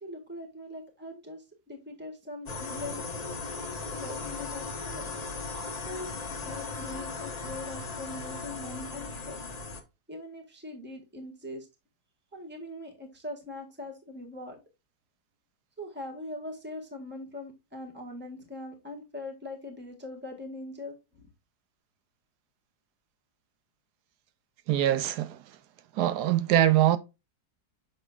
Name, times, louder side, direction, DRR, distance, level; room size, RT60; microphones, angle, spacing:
voice 1, 0.0-3.0 4.0-5.1 5.9-9.4 10.1-11.7 12.3-14.6 15.8-21.3, left 2 dB, 5° right, 1.4 m, -41 dB
sound 1, 2.5-9.8, left 3 dB, 40° left, 0.6 m, -37 dB
voice 2, 24.7-25.4 25.9-27.0, right 12 dB, 70° right, 1.0 m, -23 dB
6.5 x 6.5 x 2.3 m
omnidirectional pair, 2.0 m